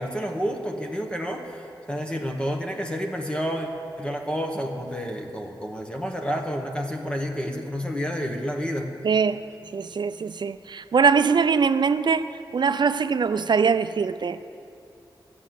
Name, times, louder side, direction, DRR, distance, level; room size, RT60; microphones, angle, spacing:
voice 1, 0.0-3.7 4.0-8.9, equal, 10° left, 1.0 m, -29 dB
voice 2, 9.0-9.4 9.7-14.5, right 5 dB, 60° right, 0.4 m, -22 dB
13.5 x 8.3 x 7.6 m
wide cardioid pair, 110°, 9 cm